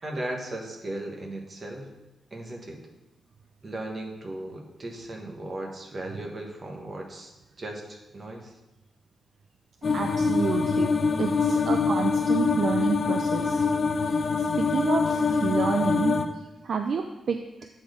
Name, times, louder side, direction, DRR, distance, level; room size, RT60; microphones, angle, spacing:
voice 1, 0.0-1.9 2.3-2.8 3.6-7.3 7.6-8.5, right 1 dB, 30° right, 1 dB, 1.2 m, -36 dB
sound 1, 9.8-16.2, left 4 dB, 40° left, 0.6 m, -24 dB
voice 2, 9.9-10.9 11.2-13.7 14.1-16.2 16.6-17.4, right 5 dB, 55° right, 5 dB, 0.4 m, -29 dB
8.5 x 4.3 x 5.0 m, 0.99 s
wide cardioid pair, 160°, 0 cm